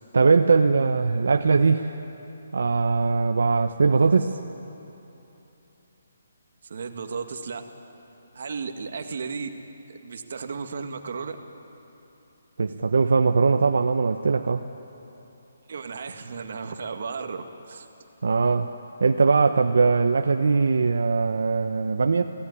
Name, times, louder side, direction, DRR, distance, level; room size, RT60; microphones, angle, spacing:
voice 1, 0.1-2.0 2.5-4.4 12.6-14.6 18.2-18.7 19.0-22.2, right 4 dB, 70° right, 6 dB, 0.9 m, -21 dB
voice 2, 6.7-7.6 8.3-9.5 9.9-11.4 15.7-17.9, right 5 dB, 50° right, 6 dB, 1.9 m, -34 dB
29.0 x 17.0 x 9.9 m, 3.0 s
hypercardioid pair, 175°, 0 cm